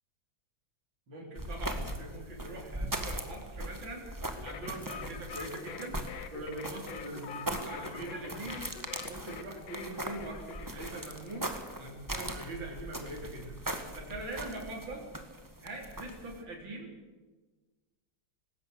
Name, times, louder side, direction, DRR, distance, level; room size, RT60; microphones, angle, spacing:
voice 1, 1.1-4.1 4.4-6.0 6.3-8.7 9.1-11.5 11.8-13.6 13.9-15.1 15.6-16.9, right 2 dB, 75° right, -1 dB, 4.4 m, -42 dB
sound 1, 1.4-16.4, right 1 dB, 10° right, 1.7 m, -40 dB
sound 2, 4.4-11.5, left 7 dB, 90° left, 2.0 m, -46 dB
19.5 x 17.5 x 8.1 m, 1.3 s
omnidirectional pair, 2.1 m